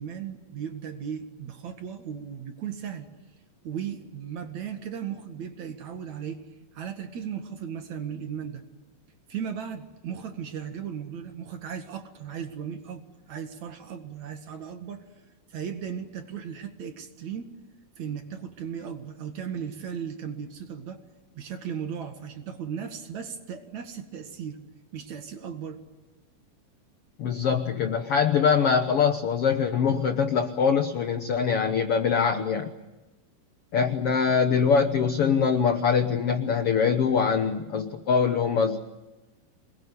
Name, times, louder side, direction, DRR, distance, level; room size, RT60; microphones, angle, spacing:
voice 1, 0.0-3.1 3.6-6.4 6.7-8.6 9.3-15.0 15.5-17.5 18.0-21.0 21.3-24.6 24.9-25.8, right 8 dB, 55° right, 6 dB, 2.9 m, -36 dB
voice 2, 27.2-32.7 33.7-38.8, left 6 dB, 90° left, 7 dB, 1.2 m, -23 dB
27.5 x 20.5 x 9.7 m, 1.1 s
omnidirectional pair, 4.4 m